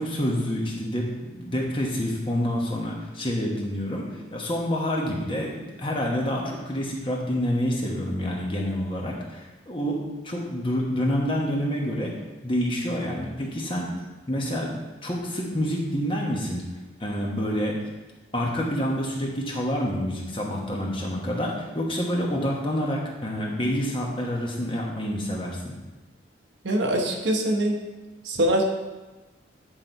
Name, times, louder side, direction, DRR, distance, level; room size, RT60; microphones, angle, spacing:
voice 1, 0.0-10.0 10.2-12.1 12.4-13.9 14.3-14.7 15.0-16.6 17.0-17.7 18.3-25.7, equal, 25° left, -1 dB, 1.2 m, -27 dB
voice 2, 26.6-27.8 28.3-28.7, right 1 dB, 75° right, 1 dB, 1.1 m, -23 dB
9.7 x 4.1 x 4.6 m, 1.2 s
head